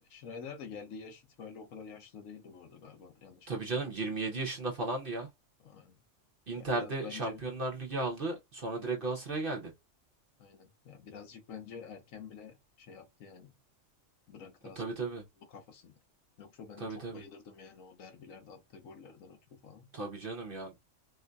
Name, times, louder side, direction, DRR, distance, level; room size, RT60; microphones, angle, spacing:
voice 1, 0.0-3.5 5.6-6.0 6.5-7.4 10.4-13.5 14.3-14.8 15.4-15.9 16.4-19.9, left 6 dB, 85° left, 1.3 m, -48 dB
voice 2, 3.5-5.3 6.5-9.7 14.8-15.2 16.8-17.2 19.9-20.7, right 3 dB, 50° right, 0.8 m, -35 dB
4.4 x 2.5 x 2.2 m
omnidirectional pair, 1.3 m